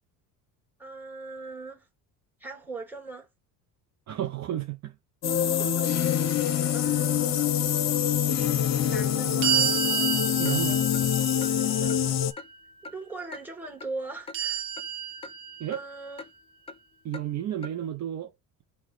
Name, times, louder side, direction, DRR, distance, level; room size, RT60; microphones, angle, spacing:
voice 1, 0.8-1.9 2.4-3.3 5.6-5.9 6.7-7.5 8.9-9.7 11.5-12.1 12.8-14.6 15.7-16.2, right 3 dB, 5° right, 1.8 m, -40 dB
voice 2, 4.1-4.9 5.5-5.7 10.4-10.8 15.6-15.8 17.0-18.3, right 11 dB, 45° right, 0.6 m, -32 dB
sound 1, 5.2-12.3, left 9 dB, 45° left, 0.7 m, -25 dB
sound 2, 9.4-12.6 14.3-16.1, right 10 dB, 60° right, 1.1 m, -30 dB
Clock, 10.5-10.6 10.9-11.0 11.4-11.5 11.9-12.0 12.4-12.5 12.8-13.0 13.3-13.4 13.8-13.9 14.3-14.4 14.8-14.9 15.2-15.3 15.7-15.8 16.2-16.3 16.7-16.8 17.1-17.3 17.6-17.7, left 3 dB, 15° left, 0.4 m, -42 dB
4.1 x 2.3 x 4.7 m
cardioid pair, 105°, 38 cm